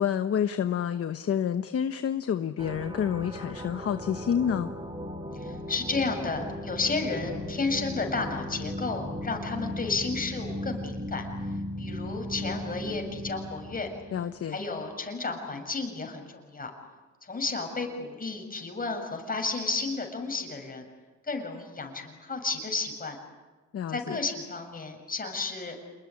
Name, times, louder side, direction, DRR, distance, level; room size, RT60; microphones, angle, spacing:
voice 1, 0.0-4.7 14.1-14.6 23.7-24.2, left 8 dB, 50° left, 9 dB, 1.1 m, -28 dB
sound 1, 2.6-14.3, left 1 dB, 15° right, 4.7 m, -37 dB
voice 2, 5.3-11.3 11.8-13.9 14.5-16.7 17.2-20.9 21.2-23.2 23.9-25.8, left 3 dB, 30° left, 4 dB, 7.0 m, -32 dB
28.5 x 21.0 x 9.8 m, 1.3 s
cardioid pair, 90°, 30 cm